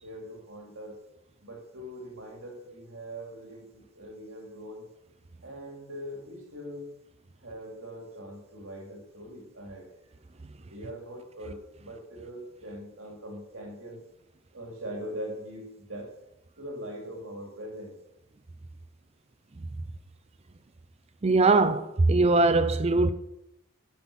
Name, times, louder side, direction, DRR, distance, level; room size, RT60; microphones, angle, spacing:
voice 1, 0.0-1.0 1.4-4.9 5.4-6.9 7.4-9.9 10.5-14.0 14.5-16.1 16.6-17.9, equal, 65° right, 2.8 m, -41 dB
voice 2, 21.2-23.1, right 3 dB, 30° right, 0.5 m, -21 dB
11.0 x 5.9 x 6.2 m
head